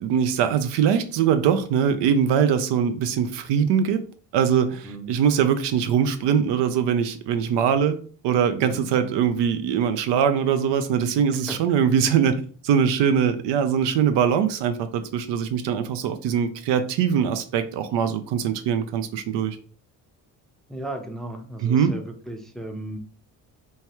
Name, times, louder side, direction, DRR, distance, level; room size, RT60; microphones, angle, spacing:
voice 1, 0.0-4.0 4.3-8.0 8.2-19.6 21.6-21.9, right 8 dB, 65° right, 9 dB, 0.5 m, -22 dB
voice 2, 8.6-9.0 11.3-11.5 20.7-23.0, right 1 dB, ahead, 3 dB, 0.5 m, -36 dB
3.1 x 2.2 x 2.9 m, 0.42 s
supercardioid pair, 60°, 46 cm